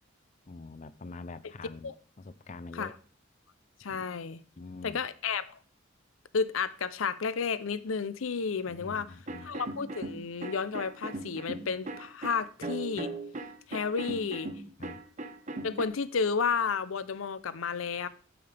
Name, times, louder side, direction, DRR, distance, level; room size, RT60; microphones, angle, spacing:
voice 1, 0.5-1.9 2.2-2.9 3.9-4.0 4.6-5.0 8.7-9.6 14.8-15.0, left 3 dB, 35° left, 0.5 m, -45 dB
voice 2, 3.8-4.4 4.8-5.6 6.3-9.1 9.4-13.1 13.7-14.5 15.6-18.1, left 5 dB, 90° left, 0.6 m, -32 dB
sound 1, 9.3-15.8, right 2 dB, 35° right, 1.0 m, -39 dB
12.0 x 8.8 x 3.4 m
head